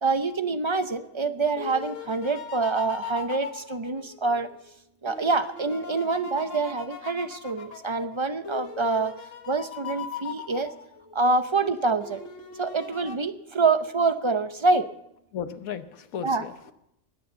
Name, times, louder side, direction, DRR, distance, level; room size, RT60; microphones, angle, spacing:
voice 1, 0.0-4.5 5.0-9.1 9.5-10.7 11.1-12.2 12.6-14.9 16.2-16.4, right 3 dB, 30° right, 10 dB, 0.5 m, -26 dB
sound 1, 1.0-4.6 5.1-11.2 12.0-13.2, left 6 dB, 65° left, 1.6 m, -39 dB
voice 2, 15.3-16.7, left 8 dB, 90° left, 10 dB, 1.4 m, -35 dB
20.5 x 7.1 x 7.6 m, 0.81 s
omnidirectional pair, 1.4 m